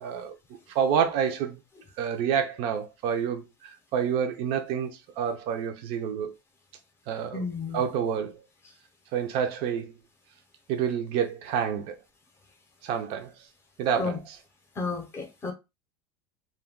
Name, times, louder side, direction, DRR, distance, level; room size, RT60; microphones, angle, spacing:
voice 1, 0.0-0.4 0.7-1.6 2.0-6.3 7.1-7.4 7.7-8.5 9.1-9.9 10.7-11.9 12.8-13.3 13.8-14.4, right 8 dB, 50° right, 0.5 m, -28 dB
voice 2, 7.3-7.8 14.0-14.2 14.8-15.5, left 4 dB, 20° left, 0.7 m, -32 dB
2.2 x 2.2 x 3.6 m
supercardioid pair, 140°, 12 cm